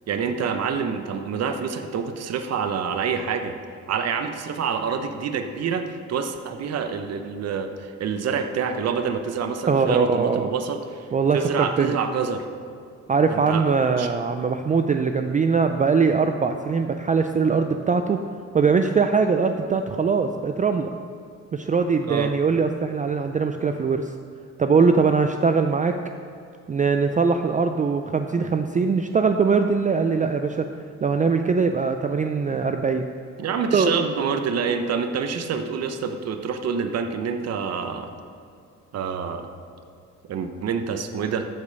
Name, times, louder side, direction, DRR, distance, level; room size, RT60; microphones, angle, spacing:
voice 1, 0.1-3.6 3.9-11.1 11.3-12.4 13.3-14.1 22.1-22.3 33.4-38.1 38.9-39.5 40.3-41.5, right 6 dB, 55° right, 7 dB, 0.9 m, -27 dB
voice 2, 9.7-10.5 11.1-12.0 13.1-18.2 18.5-20.9 21.5-24.1 24.6-25.9 26.7-30.7 31.0-33.0 33.7-33.9, right 5 dB, 25° right, 6 dB, 0.4 m, -21 dB
14.0 x 5.1 x 5.4 m, 2.3 s
cardioid pair, 90°, 30 cm